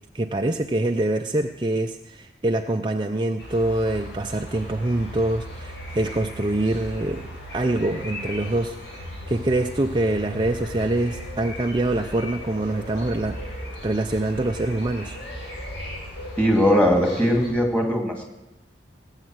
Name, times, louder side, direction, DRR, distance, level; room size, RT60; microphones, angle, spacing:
voice 1, 0.1-7.3 7.5-15.2, right 1 dB, 25° right, 4 dB, 0.5 m, -25 dB
sound 1, 3.4-17.5, equal, 70° left, 6.7 m, -37 dB
voice 2, 16.4-18.2, equal, 5° left, 1 dB, 2.4 m, -20 dB
18.5 x 8.2 x 7.8 m, 0.99 s
head